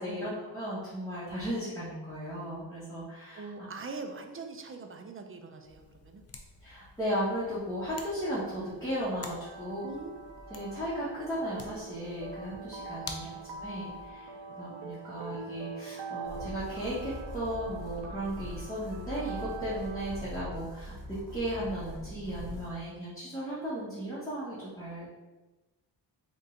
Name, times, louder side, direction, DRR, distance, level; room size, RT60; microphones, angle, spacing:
voice 1, 0.0-3.5 6.6-9.8 10.5-13.3 13.6-25.1, equal, 10° left, -11 dB, 1.3 m, -36 dB
voice 2, 3.3-6.2 9.8-10.1 13.1-13.2 13.5-13.6 14.3-14.6, right 4 dB, 30° right, 5 dB, 0.5 m, -43 dB
sound 1, 5.6-14.1, left 3 dB, 35° left, 0.5 m, -49 dB
sound 2, 8.0-20.3, right 4 dB, 85° right, 0.5 m, -44 dB
sound 3, 16.2-22.7, equal, 60° right, 1.1 m, -42 dB
3.7 x 2.7 x 3.7 m, 1.1 s
cardioid pair, 85°, 42 cm